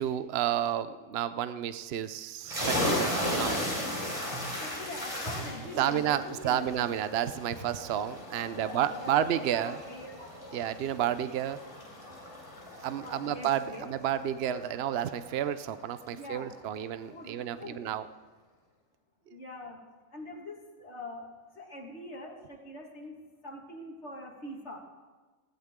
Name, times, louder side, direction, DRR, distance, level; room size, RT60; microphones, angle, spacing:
voice 1, 0.0-3.6 5.8-9.8 10.5-11.6 12.8-18.0, right 10 dB, 55° right, 13 dB, 0.8 m, -31 dB
sound 1, 2.4-15.8, left 1 dB, 25° right, 4.1 m, -36 dB
voice 2, 4.6-6.7 8.5-10.6 13.0-13.9 16.1-16.5 17.1-17.8 19.3-19.8 20.1-23.2 23.4-24.8, left 1 dB, 55° left, 1 dB, 2.3 m, -43 dB
19.5 x 17.0 x 3.7 m, 1.4 s
omnidirectional pair, 1.4 m